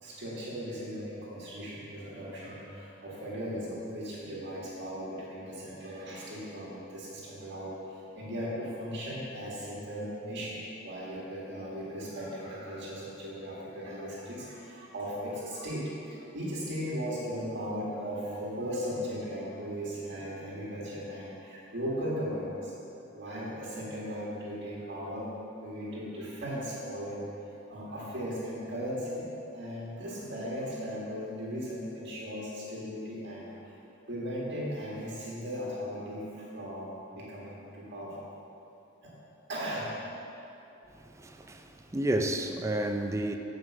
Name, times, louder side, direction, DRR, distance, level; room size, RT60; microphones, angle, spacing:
voice 1, 0.0-22.7 23.1-25.3 25.6-27.2 27.7-29.2 29.5-33.8 34.1-38.2 39.0-39.2 39.5-39.9 41.2-41.6, equal, 60° right, -5 dB, 1.5 m, -37 dB
voice 2, 40.9-43.4, right 1 dB, 15° right, 5 dB, 0.4 m, -31 dB
7.5 x 5.1 x 7.1 m, 2.9 s
head